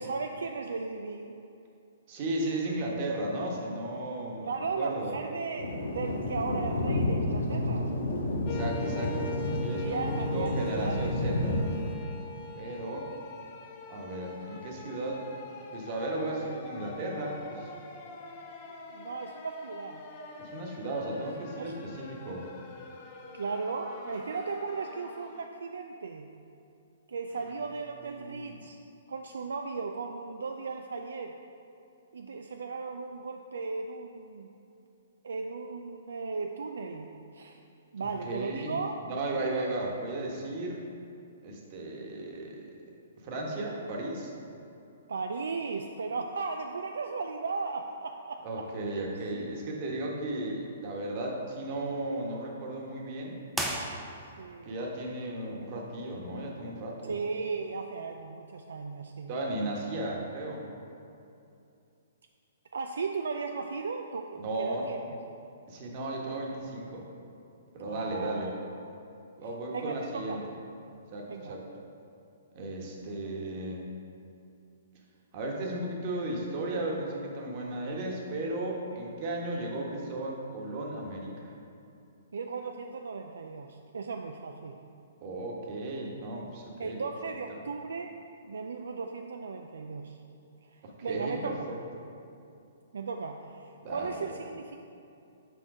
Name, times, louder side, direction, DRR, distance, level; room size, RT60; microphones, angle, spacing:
voice 1, 0.0-1.3 4.4-7.9 9.8-11.1 18.7-20.0 21.2-21.3 21.6-21.7 23.3-26.3 27.1-28.8 29.1-31.4 32.1-34.5 35.2-37.6 37.9-39.0 45.1-48.4 48.9-49.1 49.3-49.5 54.4-54.8 57.1-59.3 62.7-65.0 67.8-68.5 69.7-70.4 71.3-71.6 78.9-79.0 82.3-84.8 86.8-88.1 88.4-90.2 90.7-91.8 92.9-94.8, right 4 dB, 75° right, 4 dB, 0.3 m, -36 dB
voice 2, 2.1-5.2 8.5-10.0 10.3-11.6 12.5-13.1 13.9-15.2 15.7-17.7 20.4-22.5 27.4-27.5 28.0-28.6 38.0-38.8 39.0-40.8 41.4-42.7 43.2-44.3 48.4-53.4 54.6-57.1 59.3-60.6 64.4-64.8 65.7-67.0 67.7-68.5 69.4-70.5 71.1-71.6 72.5-73.8 75.3-81.4 85.2-87.0 87.5-87.6 90.8-91.8 93.8-94.5, right 2 dB, 40° right, -1 dB, 1.3 m, -35 dB
Thunder, 5.6-11.9, left 1 dB, 75° left, 0.9 m, -30 dB
Okarche OK Replacement Synth, 8.4-25.5, left 3 dB, 40° left, 0.7 m, -44 dB
sound 1, 53.5-54.5, right 1 dB, ahead, 0.6 m, -34 dB
6.4 x 4.3 x 4.9 m, 2.6 s
hypercardioid pair, 125°, 0 cm